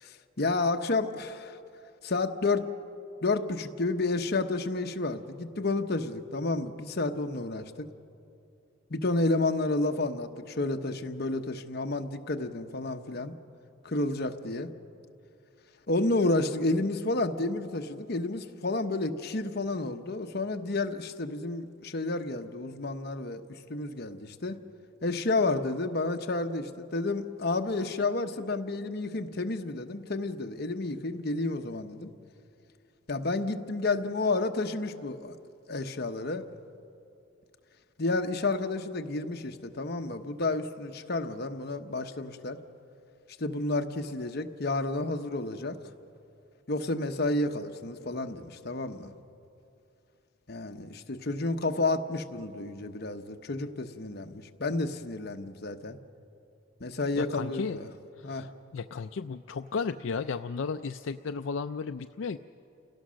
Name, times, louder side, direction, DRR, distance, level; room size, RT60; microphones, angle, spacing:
voice 1, 0.0-1.6 2.0-2.7 3.2-7.9 8.9-13.3 13.8-14.7 15.9-23.4 23.7-24.6 25.0-32.1 33.1-35.4 35.7-36.4 38.0-42.6 43.4-45.8 46.7-49.1 50.5-56.0 56.8-57.9 58.2-58.5, left 2 dB, 55° left, 6 dB, 1.0 m, -30 dB
voice 2, 57.2-57.8 58.2-62.4, left 5 dB, 75° left, 9 dB, 0.4 m, -34 dB
29.5 x 17.5 x 6.4 m, 2.6 s
head